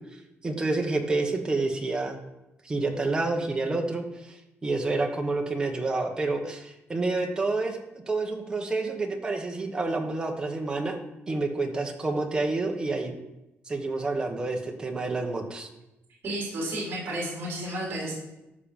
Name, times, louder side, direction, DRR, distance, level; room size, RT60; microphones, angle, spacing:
voice 1, 0.4-2.2 2.6-4.4 4.6-7.8 8.1-11.0 11.3-13.1 13.7-15.7, right 3 dB, 15° right, 2 dB, 1.2 m, -28 dB
voice 2, 16.2-18.2, right 1 dB, 45° right, -5 dB, 4.4 m, -32 dB
13.5 x 5.9 x 5.4 m, 0.96 s
cardioid pair, 170°, 5 cm